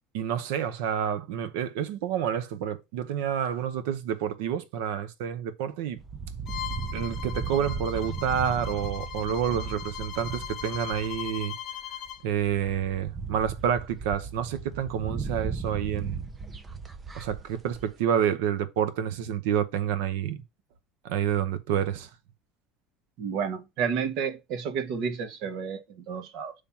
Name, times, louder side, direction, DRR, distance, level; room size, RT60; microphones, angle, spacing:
voice 1, 0.1-6.0 6.9-11.5 12.2-16.2 17.1-20.4 21.0-22.1, right 9 dB, 85° right, 0.9 m, -29 dB
sound 1, 6.0-11.5 12.1-12.2 12.4-17.9, right 5 dB, 20° right, 0.5 m, -37 dB
Bowed string instrument, 6.5-12.2, left 10 dB, 45° left, 0.9 m, -39 dB
voice 2, 23.2-26.5, right 6 dB, 60° right, 1.2 m, -31 dB
7.1 x 3.4 x 5.7 m
cardioid pair, 140°, 0 cm